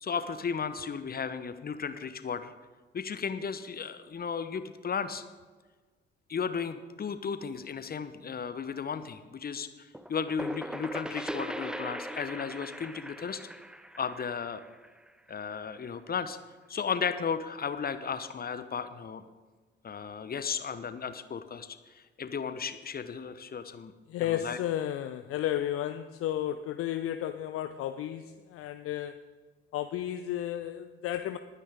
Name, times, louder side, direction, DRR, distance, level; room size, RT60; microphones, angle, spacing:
voice 1, 0.0-2.5 2.9-5.2 6.3-13.4 14.0-14.6 15.3-16.4 16.7-19.2 19.8-23.9 24.2-24.6, left 6 dB, 30° left, 11 dB, 1.0 m, -35 dB
sound 1, 9.9-15.5, equal, 5° right, 0.6 m, -39 dB
voice 2, 24.1-29.2 29.7-31.4, left 12 dB, 50° left, 9 dB, 0.6 m, -33 dB
20.0 x 9.7 x 3.8 m, 1.4 s
figure-of-eight pair, 45°, 29 cm